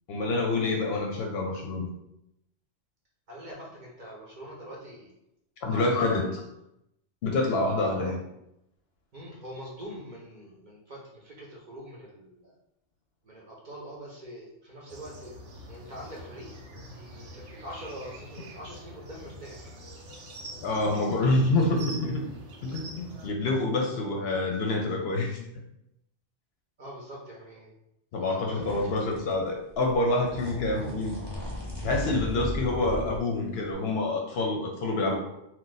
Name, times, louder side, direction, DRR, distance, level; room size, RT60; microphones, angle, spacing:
voice 1, 0.1-1.9 5.6-6.3 7.2-8.2 20.6-22.2 22.6-25.4 28.1-31.2 31.8-35.2, left 2 dB, 65° left, 1 dB, 0.7 m, -27 dB
voice 2, 3.3-5.1 5.6-6.3 7.8-8.0 9.1-12.5 13.2-15.3 15.7-16.5 16.9-19.8 26.8-27.7 28.2-28.9 32.7-32.8, equal, 50° right, -4 dB, 0.7 m, -43 dB
sound 1, 14.9-23.3, right 1 dB, 90° right, 1.0 m, -45 dB
sound 2, 28.6-29.5 29.7-33.2 33.7-33.8, left 1 dB, 25° left, 0.8 m, -36 dB
2.4 x 2.3 x 3.9 m, 0.83 s
omnidirectional pair, 1.2 m